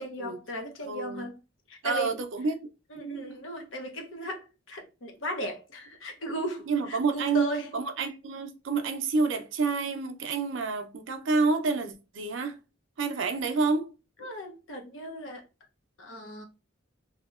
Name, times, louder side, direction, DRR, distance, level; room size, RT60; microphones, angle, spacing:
voice 1, 0.0-1.4 1.7-2.2 2.9-7.7 14.2-15.4 16.0-16.4, equal, 75° left, 0.8 m, -36 dB
voice 2, 0.8-1.3 1.8-2.7 6.7-7.5 7.7-12.6 13.0-13.9, right 4 dB, 65° right, 0.5 m, -28 dB
2.8 x 2.7 x 2.4 m
head